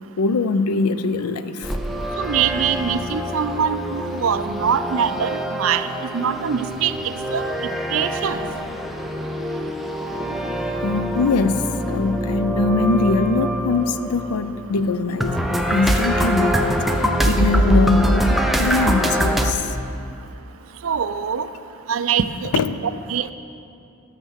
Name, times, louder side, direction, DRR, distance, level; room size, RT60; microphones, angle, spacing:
voice 1, 0.2-1.7 10.3-10.4 10.8-16.8 17.3-19.7 22.5-22.8, left 3 dB, 85° left, 13 dB, 0.5 m, -22 dB
sound 1, 1.6-19.5, equal, ahead, 0.5 m, -24 dB
voice 2, 2.2-7.5 7.9-8.4 20.8-21.5 21.9-22.5 22.8-23.3, right 7 dB, 65° right, 11 dB, 0.5 m, -23 dB
12.5 x 6.5 x 6.4 m, 2.6 s
head